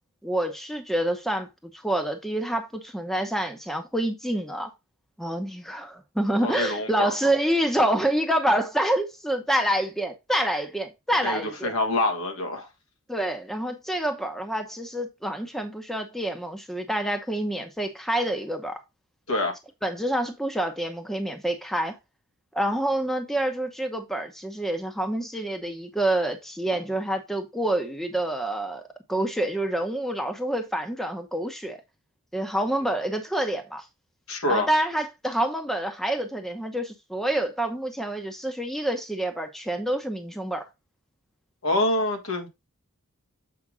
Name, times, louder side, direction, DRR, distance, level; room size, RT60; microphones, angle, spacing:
voice 1, 0.2-4.7 5.2-11.8 13.1-18.8 19.8-22.0 22.5-28.8 29.1-31.8 32.3-33.8 34.5-40.6, right 1 dB, ahead, 0.9 m, -27 dB
voice 2, 6.4-7.1 11.2-12.7 19.3-19.5 34.3-34.7 41.6-42.5, left 1 dB, 75° left, 1.9 m, -26 dB
7.5 x 5.2 x 3.7 m
head